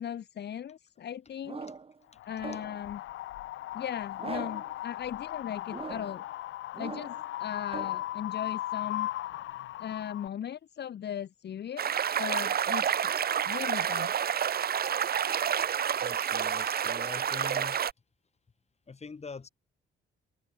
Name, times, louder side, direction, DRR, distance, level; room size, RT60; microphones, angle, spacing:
voice 1, 0.0-1.7 2.2-3.0 3.7-6.2 6.8-7.1 7.4-9.1 9.8-11.9 12.2-12.9 13.5-14.1, left 9 dB, 55° left, 1.8 m, -38 dB
sound 1, 1.4-2.0 2.4-2.9 4.2-4.7 5.7-6.2 6.7-7.3 7.7-8.0, right 4 dB, 30° right, 2.0 m, -41 dB
Wind, 2.2-10.3, left 14 dB, 80° left, 1.4 m, -37 dB
sound 2, 11.8-17.9, right 8 dB, 50° right, 1.4 m, -29 dB
voice 2, 16.0-17.8 18.9-19.5, left 4 dB, 35° left, 7.1 m, -43 dB
open air
cardioid pair, 90°, 20 cm